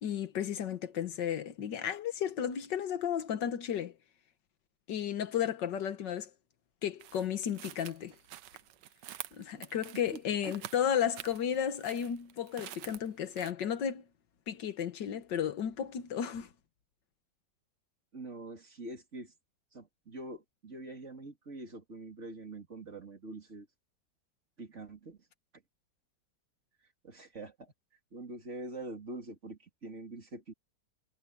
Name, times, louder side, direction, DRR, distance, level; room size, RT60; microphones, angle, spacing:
voice 1, 0.0-4.0 4.9-6.3 6.8-8.1 9.3-14.0 14.5-16.5, left 9 dB, 85° left, 1.9 m, -33 dB
sound 1, 7.0-13.5, right 12 dB, 85° right, 1.4 m, -48 dB
voice 2, 18.1-19.3 19.7-23.7 24.6-25.2 27.0-27.7 28.1-30.5, right 2 dB, 40° right, 3.6 m, -44 dB
omnidirectional pair, 1.9 m